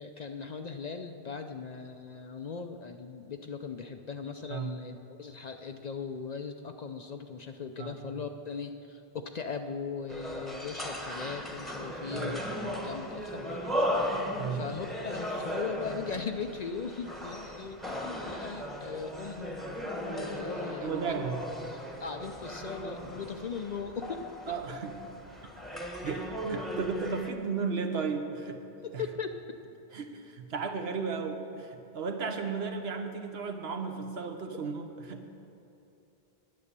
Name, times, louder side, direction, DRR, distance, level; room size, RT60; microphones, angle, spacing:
voice 1, 0.0-19.6 19.9-21.2 22.0-24.2 28.8-29.3, left 5 dB, 55° left, 6 dB, 0.5 m, -39 dB
sound 1, 10.1-27.3, equal, ahead, 0.9 m, -37 dB
voice 2, 12.1-12.4 14.4-14.6 20.8-21.4 24.5-25.0 26.0-28.6 28.9-29.0 29.9-35.3, right 5 dB, 75° right, 5 dB, 1.2 m, -34 dB
9.9 x 9.7 x 6.7 m, 2.8 s
omnidirectional pair, 1.1 m